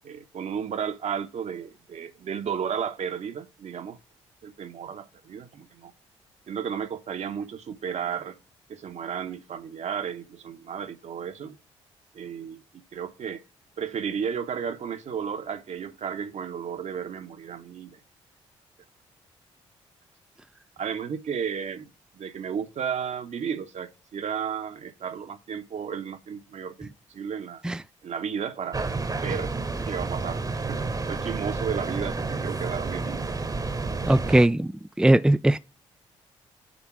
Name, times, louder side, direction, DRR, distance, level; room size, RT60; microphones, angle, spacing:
voice 1, 0.0-4.0 4.4-5.9 6.5-8.4 8.7-11.6 12.1-13.4 13.8-18.0 20.8-21.9 22.1-27.6 28.0-28.8 29.2-29.6 29.9-33.3, right 7 dB, 55° right, 1.2 m, -33 dB
sound 1, 28.7-34.5, right 3 dB, 25° right, 1.2 m, -30 dB
voice 2, 34.0-34.7 35.0-35.6, right 1 dB, 5° right, 0.5 m, -19 dB
9.5 x 4.0 x 6.1 m
hypercardioid pair, 40°, 14 cm